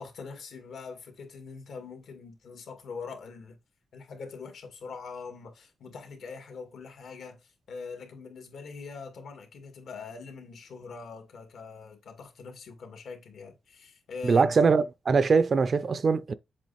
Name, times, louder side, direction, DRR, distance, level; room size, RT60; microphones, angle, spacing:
voice 1, 0.0-3.6 3.9-14.5, left 5 dB, 70° left, 2.3 m, -43 dB
voice 2, 14.2-16.3, right 5 dB, 35° right, 0.4 m, -22 dB
7.6 x 3.2 x 4.1 m
wide cardioid pair, 180°, 0 cm